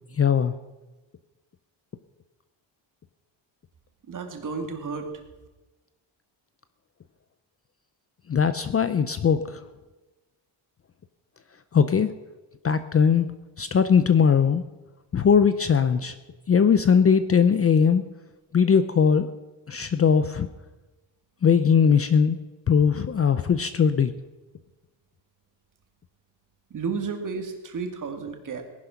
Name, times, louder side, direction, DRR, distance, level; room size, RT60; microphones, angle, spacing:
voice 1, 0.2-0.5 8.3-9.6 11.7-12.1 12.6-13.3 13.6-14.6 15.1-16.1 16.5-18.0 18.5-19.3 19.7-20.5 21.4-22.4 22.7-24.1, left 6 dB, 30° left, 12 dB, 0.5 m, -20 dB
voice 2, 4.1-5.1 26.7-28.6, right 5 dB, 40° right, 4 dB, 2.3 m, -32 dB
18.5 x 11.0 x 5.9 m, 1.2 s
cardioid pair, 150°, 49 cm